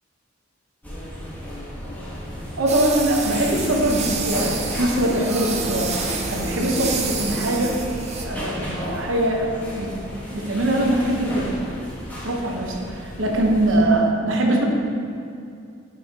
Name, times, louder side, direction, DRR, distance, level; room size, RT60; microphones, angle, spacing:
sound 1, 0.8-13.8, equal, 10° left, 1.4 m, -33 dB
voice 1, 2.6-5.9 6.3-7.8 8.2-9.5 9.8-9.9 10.3-11.6 12.2-14.6, right 1 dB, 75° right, 0 dB, 1.0 m, -22 dB
sound 2, 2.7-8.2, right 5 dB, 35° right, 0.6 m, -29 dB
sound 3, 4.8-11.9, equal, 20° right, 1.4 m, -42 dB
8.8 x 5.6 x 2.9 m, 2.5 s
head